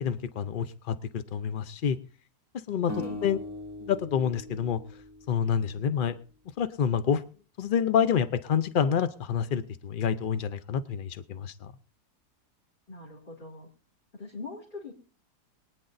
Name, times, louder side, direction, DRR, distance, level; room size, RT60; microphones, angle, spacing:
voice 1, 0.0-2.0 2.7-3.4 3.8-4.8 5.3-6.2 6.6-7.2 7.6-11.7, left 7 dB, 85° left, 13 dB, 0.4 m, -28 dB
sound 1, 2.9-6.1, left 2 dB, 15° right, 0.7 m, -41 dB
voice 2, 3.0-3.3 12.9-13.7 14.2-14.9, left 3 dB, 30° left, -2 dB, 2.5 m, -41 dB
23.5 x 9.9 x 2.6 m, 0.38 s
omnidirectional pair, 1.8 m